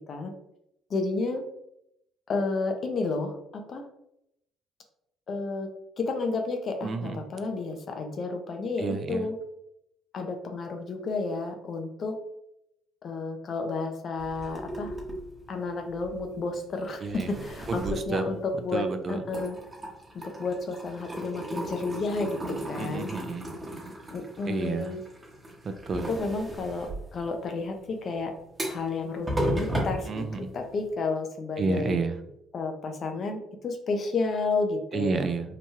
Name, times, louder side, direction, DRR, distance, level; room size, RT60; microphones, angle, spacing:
voice 1, 0.9-1.4 2.3-3.9 5.3-5.7 6.0-9.4 10.1-12.2 13.0-14.9 15.5-19.6 20.1-23.1 24.1-25.0 26.1-28.4 28.6-32.0 32.5-35.3, left 3 dB, 50° left, 5 dB, 0.5 m, -31 dB
voice 2, 6.8-7.2 8.8-9.3 17.0-17.3 17.7-18.2 18.7-19.2 22.8-23.5 24.5-24.9 25.6-26.1 30.1-30.5 31.6-32.2 34.9-35.6, right 4 dB, 50° right, 8 dB, 0.3 m, -30 dB
sound 1, 14.2-16.7 17.1-18.9 19.2-30.9, right 1 dB, 25° right, 0.8 m, -36 dB
2.9 x 2.2 x 2.9 m, 0.80 s
supercardioid pair, 65°, 0 cm